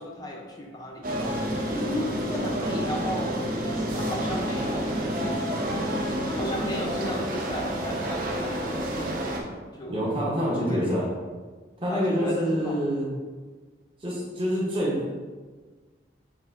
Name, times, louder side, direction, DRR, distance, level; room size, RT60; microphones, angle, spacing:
voice 1, 0.0-5.2 6.2-10.1 10.4-11.0 11.9-12.8, equal, 20° left, 0 dB, 0.5 m, -34 dB
sound 1, 1.0-9.4, equal, 45° right, 0.5 m, -29 dB
voice 2, 9.9-11.1 11.8-13.1 14.0-15.2, equal, 30° right, -6 dB, 0.9 m, -26 dB
6.4 x 2.6 x 2.5 m, 1.4 s
head